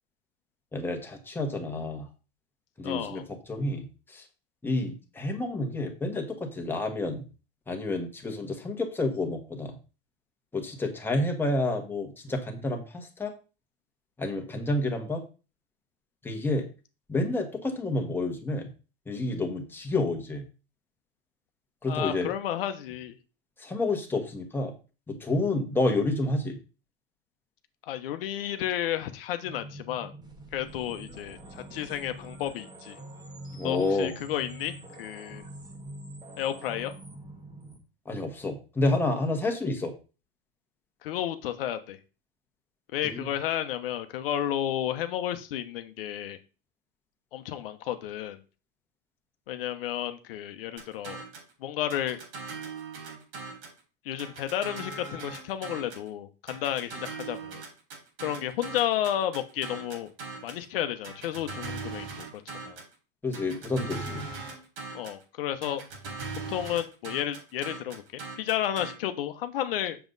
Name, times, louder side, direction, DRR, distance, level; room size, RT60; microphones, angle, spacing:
voice 1, 0.7-2.1 2.8-4.3 4.6-7.3 7.7-9.8 10.5-13.3 14.2-15.2 16.2-16.7 17.1-18.7 19.1-20.4 21.8-22.3 23.6-24.7 25.1-26.6 33.5-34.1 38.0-39.9 43.0-43.3 63.2-64.3, left 2 dB, 5° left, 3 dB, 1.5 m, -29 dB
voice 2, 2.8-3.2 21.9-23.2 27.9-30.1 30.5-33.0 33.6-35.4 36.4-36.9 41.0-42.0 42.9-46.4 47.3-48.4 49.5-51.2 51.6-52.2 54.0-57.6 58.2-60.1 60.4-62.8 64.9-65.8 66.5-70.0, left 11 dB, 70° left, 9 dB, 1.0 m, -32 dB
sound 1, 29.4-37.8, right 1 dB, 15° right, 1.4 m, -45 dB
sound 2, 50.8-51.5 51.9-53.8 54.2-56.1 56.5-60.6 61.0-62.9 63.3-65.2 65.6-68.9, right 4 dB, 80° right, 3.6 m, -40 dB
7.3 x 6.9 x 4.0 m, 0.34 s
supercardioid pair, 140°, 29 cm